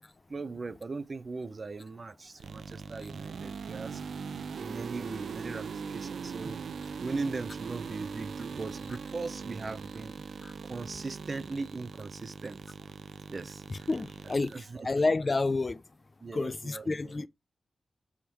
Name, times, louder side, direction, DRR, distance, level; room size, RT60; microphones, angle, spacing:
voice 1, 0.3-6.6 7.0-10.4 10.7-12.6 13.3-13.9 14.2-14.9 16.2-17.3, right 3 dB, 35° right, 0.5 m, -39 dB
sound 1, 2.4-14.6, right 5 dB, 85° right, 0.5 m, -41 dB
voice 2, 13.7-14.5 14.8-15.8 16.3-17.3, left 3 dB, 30° left, 0.3 m, -29 dB
6.2 x 3.6 x 4.3 m
wide cardioid pair, 145°, 0 cm